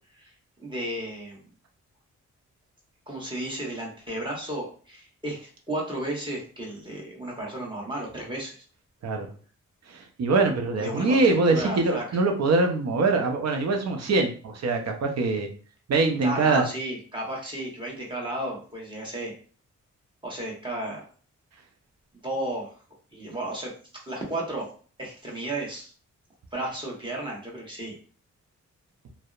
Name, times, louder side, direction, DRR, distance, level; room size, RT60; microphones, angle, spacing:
voice 1, 0.6-1.5 3.1-8.5 10.8-12.2 16.2-19.3 20.2-21.0 22.2-22.7 23.1-23.7 24.1-24.7 25.0-25.9 26.5-28.0, right 1 dB, 15° right, -3 dB, 1.1 m, -33 dB
voice 2, 9.9-15.5 15.9-16.6, right 3 dB, 60° right, 4 dB, 0.6 m, -23 dB
2.6 x 2.0 x 2.4 m, 0.41 s
cardioid pair, 60°, 30 cm